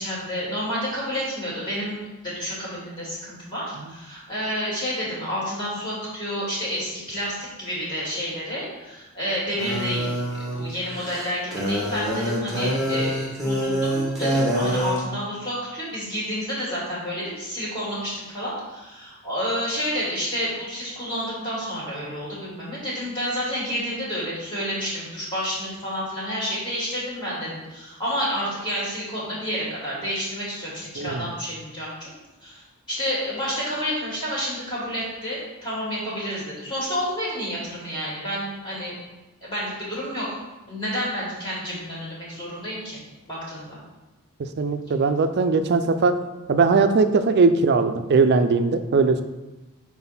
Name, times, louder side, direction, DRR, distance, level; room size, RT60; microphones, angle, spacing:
voice 1, 0.0-2.0 2.2-10.1 10.5-32.1 32.4-32.6 32.9-39.0 39.4-40.3 40.7-43.0 43.3-43.8, equal, 20° left, -7 dB, 2.2 m, -30 dB
sound 1, 9.6-15.0, equal, ahead, 1.3 m, -25 dB
voice 2, 31.0-31.3 44.4-46.2 46.5-49.2, right 4 dB, 50° right, 9 dB, 0.4 m, -20 dB
4.6 x 4.0 x 5.5 m, 1.1 s
head